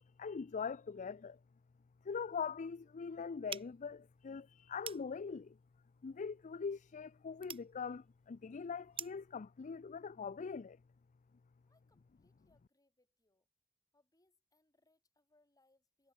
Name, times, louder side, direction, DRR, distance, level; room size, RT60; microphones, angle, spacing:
voice 1, 0.0-1.4 2.0-5.6 6.0-10.8, left 5 dB, 35° left, 0.4 m, -42 dB
sound 1, 3.5-9.3, right 7 dB, 25° right, 1.1 m, -51 dB
voice 2, 11.7-13.5 13.9-16.1, left 2 dB, 15° left, 5.3 m, -76 dB
head